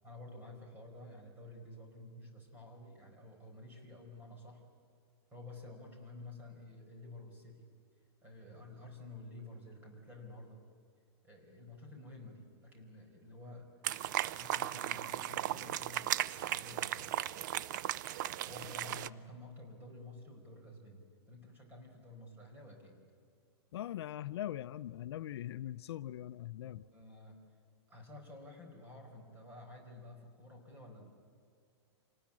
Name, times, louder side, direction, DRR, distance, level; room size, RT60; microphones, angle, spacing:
voice 1, 0.0-4.6 5.3-7.7 8.2-10.6 11.2-13.7 14.4-17.1 18.5-23.0 26.7-27.4 27.9-31.1, left 2 dB, 15° right, 1 dB, 4.6 m, -51 dB
sound 1, 13.8-19.1, right 13 dB, 45° right, 0.5 m, -36 dB
voice 2, 23.7-26.8, left 12 dB, 65° left, 14 dB, 0.5 m, -41 dB
27.0 x 19.5 x 8.7 m, 2.3 s
supercardioid pair, 165°, 14 cm